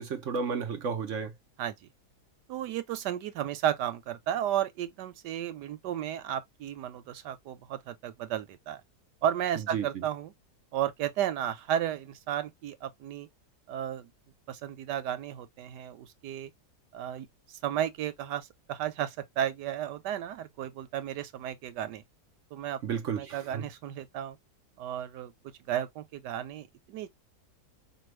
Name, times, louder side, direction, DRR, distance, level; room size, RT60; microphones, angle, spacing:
voice 1, 0.0-1.3 9.7-10.0 22.8-23.6, right 6 dB, 60° right, 0.9 m, -32 dB
voice 2, 1.6-1.9 2.5-8.8 9.2-10.3 10.7-13.3 13.7-14.1 14.5-16.5 16.9-22.0 22.5-22.8 23.1-24.4 24.8-25.3 25.7-27.1, right 10 dB, 90° right, 1.4 m, -33 dB
5.1 x 2.3 x 3.1 m
omnidirectional pair, 1.8 m